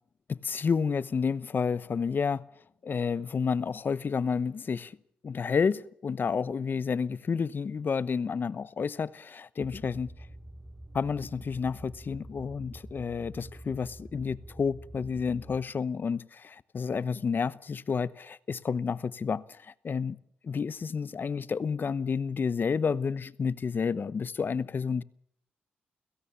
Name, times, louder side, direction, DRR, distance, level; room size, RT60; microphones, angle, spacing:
voice 1, 0.3-2.5 2.8-4.9 5.2-10.1 10.9-20.2 20.4-25.0, left 5 dB, 50° left, 1.0 m, -30 dB
sound 1, 9.6-15.6, right 1 dB, 10° right, 2.3 m, -47 dB
30.0 x 17.0 x 7.2 m
supercardioid pair, 55°, 4 cm